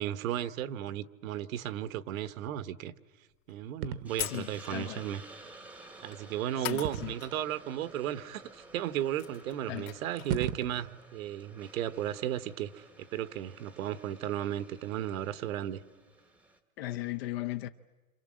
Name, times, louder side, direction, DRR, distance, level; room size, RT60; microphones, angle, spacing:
voice 1, 0.0-2.9 3.5-5.2 6.0-12.9 13.1-15.8, right 11 dB, 75° right, 1.3 m, -35 dB
sound 1, 3.5-3.6 4.2-4.9 6.0-6.2 6.6-7.3 7.6-7.7 8.7-8.8 9.0-10.4, left 15 dB, 65° left, 2.6 m, -40 dB
sound 2, 3.8-4.1 6.8-7.4 8.3-8.4 9.8-9.9 10.2-10.9, right 8 dB, 40° right, 1.0 m, -35 dB
Hiss, 4.1-16.6, right 2 dB, 5° right, 0.9 m, -53 dB
voice 2, 4.3-5.0 6.6-7.1 9.7-9.9 16.8-17.7, left 16 dB, 45° left, 0.8 m, -37 dB
29.0 x 27.0 x 7.6 m
supercardioid pair, 180°, 41 cm